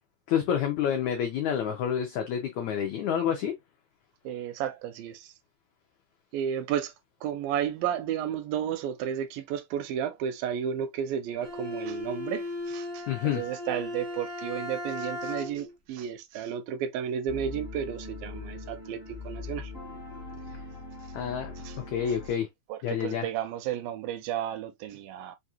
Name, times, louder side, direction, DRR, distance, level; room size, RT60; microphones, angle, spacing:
voice 1, 0.3-3.6 13.1-13.5 21.1-21.5 21.9-22.5 22.8-23.3, left 8 dB, 85° left, 1.6 m, -28 dB
voice 2, 4.3-5.3 6.3-6.9 7.2-19.7 21.6-21.8 22.7-25.4, right 9 dB, 80° right, 2.2 m, -33 dB
Bowed string instrument, 11.4-15.8, left 2 dB, 60° right, 1.0 m, -36 dB
sound 1, 17.3-22.3, left 3 dB, 65° left, 0.5 m, -41 dB
5.6 x 2.4 x 2.7 m
omnidirectional pair, 4.3 m